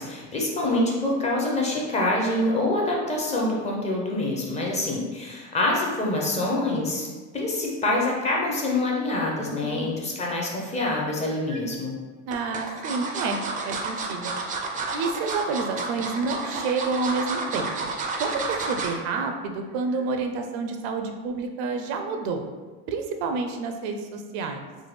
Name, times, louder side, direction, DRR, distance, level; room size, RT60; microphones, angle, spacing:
voice 1, 0.0-7.1 7.3-11.9, left 2 dB, 20° left, -2 dB, 0.6 m, -26 dB
voice 2, 9.4-9.9 12.3-13.4 13.7-14.3 14.9-17.9 18.2-22.4 22.9-24.6, right 4 dB, 90° right, 5 dB, 0.5 m, -29 dB
sound 1, 11.1-11.6 12.3-19.0 19.4-19.6 19.9-20.0, right 4 dB, 25° right, 0.3 m, -31 dB
3.3 x 2.2 x 3.2 m, 1.3 s
cardioid pair, 135°, 32 cm